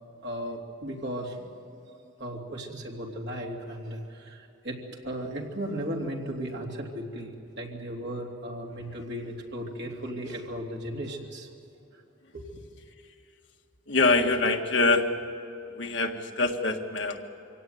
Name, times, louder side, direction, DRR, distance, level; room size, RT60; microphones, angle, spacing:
voice 1, 0.2-11.5 11.9-12.0 12.3-12.6, equal, 60° right, 0 dB, 3.2 m, -36 dB
voice 2, 13.9-15.1 15.7-17.2, left 3 dB, 65° left, 3 dB, 1.7 m, -24 dB
25.0 x 17.0 x 9.4 m, 2.9 s
head